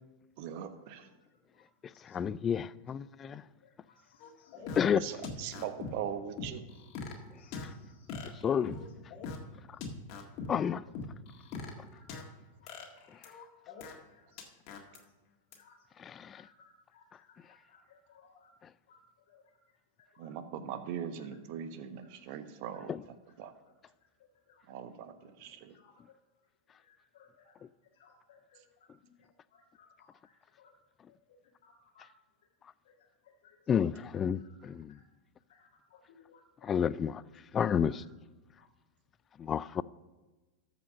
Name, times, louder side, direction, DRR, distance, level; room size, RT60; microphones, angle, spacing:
voice 1, 0.4-1.1 4.6-6.6 20.2-22.9 23.4-23.5 24.7-25.7, right 9 dB, 55° right, 1.0 m, -41 dB
voice 2, 2.0-3.4 4.8-5.0 8.4-8.8 10.5-10.8 16.0-16.4 22.9-23.0 33.7-35.0 36.6-37.2 37.5-38.0 39.4-39.8, left 8 dB, 25° left, 0.3 m, -30 dB
voice 3, 3.9-4.6 7.4-8.3 10.4-10.6 11.6-12.0 12.6-12.9 13.2-13.3 14.1-14.5 14.8-15.0 15.5-15.8 16.1-18.5 18.9-19.0 19.3-19.4 20.1-20.3 22.0-22.1 24.5-24.6 25.7-25.9 26.8-27.5 28.0-28.6 29.0-29.1 29.5-30.7 31.6-32.1 32.8-32.9 33.2-33.6 34.4-35.0 35.5-36.4 37.8-37.9 38.6-38.7, left 6 dB, 65° left, 1.5 m, -63 dB
sound 1, 4.2-4.8 5.2-5.9 6.4-7.2 7.5-7.6 8.1-8.9 9.1-9.4 9.8-10.5 10.9-12.2 12.7-13.9 14.4-15.0 15.5-15.6, left 5 dB, 50° left, 1.8 m, -41 dB
13.5 x 5.1 x 5.9 m
hypercardioid pair, 100°, 0 cm